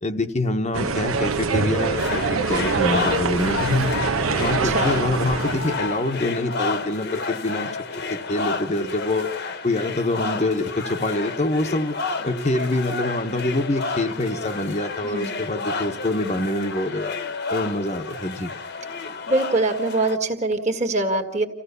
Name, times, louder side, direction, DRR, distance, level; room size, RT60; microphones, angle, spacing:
voice 1, 0.0-4.0 4.4-7.7 8.1-9.3 9.6-11.9 12.2-17.2 17.5-18.5, left 2 dB, 30° left, 5 dB, 1.0 m, -25 dB
sound 1, 0.7-6.0, right 4 dB, 75° right, 1.1 m, -24 dB
sound 2, 2.0-20.2, left 3 dB, 50° left, 1.2 m, -30 dB
voice 2, 15.0-15.3 19.3-21.5, right 2 dB, 35° right, 5 dB, 2.0 m, -23 dB
27.0 x 15.5 x 6.8 m, 0.77 s
head